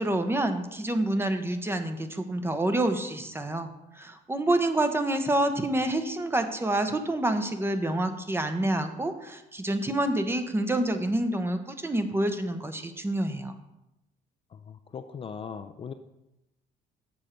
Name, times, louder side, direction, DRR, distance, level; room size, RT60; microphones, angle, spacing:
voice 1, 0.0-3.7 4.0-13.5, right 1 dB, 15° right, 8 dB, 0.8 m, -27 dB
voice 2, 14.7-15.9, left 6 dB, 35° left, 8 dB, 0.4 m, -39 dB
7.1 x 6.5 x 4.4 m, 0.90 s
cardioid pair, 110°, 17 cm